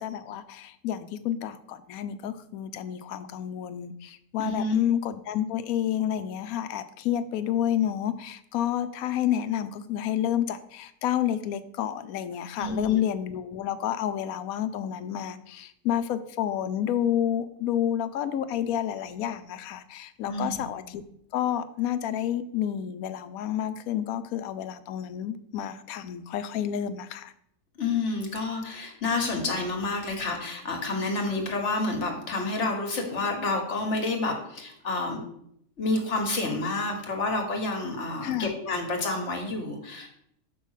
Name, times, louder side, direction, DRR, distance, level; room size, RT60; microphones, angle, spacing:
voice 1, 0.0-21.0 21.3-27.3 38.2-38.5, left 10 dB, 90° left, 12 dB, 1.1 m, -29 dB
voice 2, 4.4-4.8 12.6-13.0 20.3-20.7 27.8-35.2 35.8-40.1, left 3 dB, 55° left, 3 dB, 1.6 m, -29 dB
5.4 x 4.8 x 6.4 m, 0.73 s
omnidirectional pair, 1.5 m